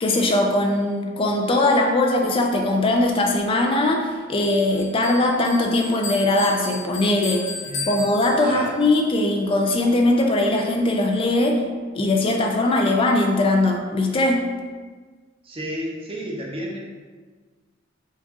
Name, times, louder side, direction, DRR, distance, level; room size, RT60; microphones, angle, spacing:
voice 1, 0.0-7.4 7.9-11.6 11.9-14.4, left 2 dB, 25° left, 2 dB, 0.4 m, -20 dB
Bell, 4.4-8.9, left 3 dB, 75° left, 0.9 m, -35 dB
voice 2, 7.6-8.1 8.4-8.8 15.4-16.8, equal, 30° right, -2 dB, 0.6 m, -32 dB
4.5 x 2.3 x 2.8 m, 1.5 s
head